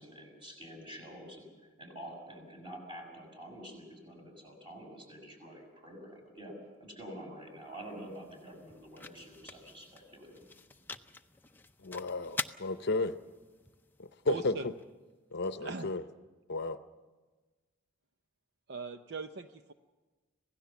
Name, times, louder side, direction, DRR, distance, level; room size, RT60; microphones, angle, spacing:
voice 1, 0.0-1.5 1.8-6.5 6.8-10.4, equal, 25° right, 1 dB, 6.3 m, -48 dB
sound 1, 7.4-15.5, left 3 dB, 10° left, 0.6 m, -46 dB
voice 2, 11.8-13.1 14.2-14.5 15.3-16.0 16.5-16.8, left 3 dB, 50° left, 10 dB, 0.8 m, -32 dB
voice 3, 14.3-14.7 15.6-15.9 18.7-19.7, right 4 dB, 50° right, 8 dB, 0.6 m, -39 dB
26.5 x 17.0 x 7.0 m, 1.3 s
head